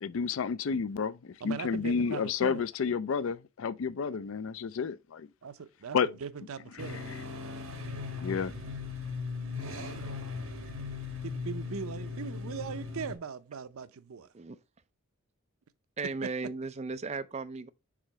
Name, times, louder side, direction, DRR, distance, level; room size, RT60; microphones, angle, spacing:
voice 1, 0.0-5.3 5.9-6.1 8.2-8.5, left 6 dB, 70° left, 0.4 m, -31 dB
voice 2, 1.4-2.6 5.4-7.3 11.2-14.3, right 6 dB, 85° right, 0.5 m, -40 dB
sound 1, 6.8-13.2, left 4 dB, 70° right, 1.5 m, -38 dB
voice 3, 16.0-17.7, right 4 dB, 30° right, 0.4 m, -36 dB
4.9 x 3.8 x 5.5 m
head